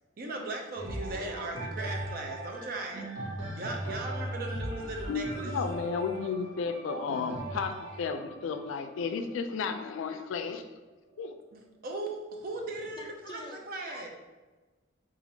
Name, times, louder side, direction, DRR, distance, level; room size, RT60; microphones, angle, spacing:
voice 1, 0.2-3.1 3.6-5.5 11.5-14.1, right 2 dB, 50° right, 2 dB, 0.5 m, -38 dB
sound 1, 0.8-10.5 11.2-11.3, right 1 dB, 65° right, 0.9 m, -39 dB
voice 2, 5.1-10.6 11.2-11.3, left 5 dB, 80° left, 8 dB, 0.3 m, -33 dB
voice 3, 12.8-13.6 13.9-14.1, left 2 dB, 25° left, 1 dB, 0.5 m, -46 dB
4.2 x 2.5 x 2.7 m, 1.2 s
head